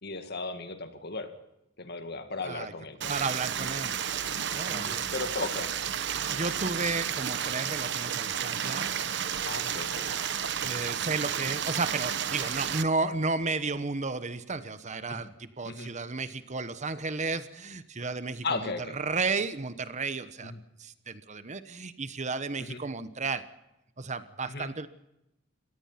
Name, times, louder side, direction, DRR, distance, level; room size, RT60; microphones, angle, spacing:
voice 1, 0.0-1.3 1.8-3.1 4.7-5.7 9.5-10.1 15.1-15.2 15.6-15.9 18.4-19.0 20.4-20.6 22.6-22.8 24.5-24.7, left 3 dB, 55° left, 8 dB, 2.2 m, -36 dB
Stream, 3.0-12.8, right 8 dB, 60° right, 1.1 m, -32 dB
voice 2, 3.1-4.0 4.5-5.1 6.3-8.9 10.6-20.5 20.8-23.5 24.0-24.9, right 3 dB, 35° right, 12 dB, 1.1 m, -33 dB
24.5 x 18.5 x 5.9 m, 0.87 s
head